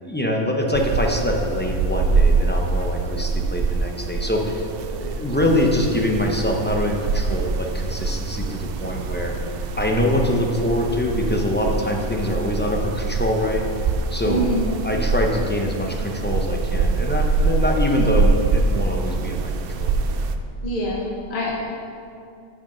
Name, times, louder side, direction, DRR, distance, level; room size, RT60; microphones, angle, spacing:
voice 1, 0.0-9.3 9.8-13.6 14.1-19.5 19.8-19.9, left 1 dB, 10° left, 0 dB, 0.6 m, -24 dB
sound 1, 0.7-20.4, right 4 dB, 65° right, 0.7 m, -24 dB
voice 2, 14.3-14.6 20.6-21.5, equal, 50° left, -4 dB, 1.2 m, -25 dB
6.6 x 6.3 x 6.2 m, 2.6 s
omnidirectional pair, 1.2 m